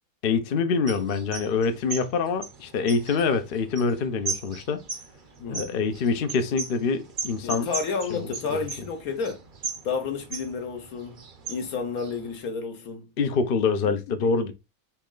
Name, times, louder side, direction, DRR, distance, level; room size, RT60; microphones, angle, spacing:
voice 1, 0.2-4.8 5.5-7.7 8.1-8.6 13.2-14.5, left 5 dB, 55° left, 0.6 m, -25 dB
sound 1, 0.9-12.4, right 5 dB, 45° right, 0.7 m, -38 dB
voice 2, 7.4-9.4 9.8-11.2 11.5-13.1 13.8-13.9 14.2-14.3, left 5 dB, 70° left, 1.4 m, -31 dB
4.3 x 3.1 x 3.7 m
omnidirectional pair, 1.6 m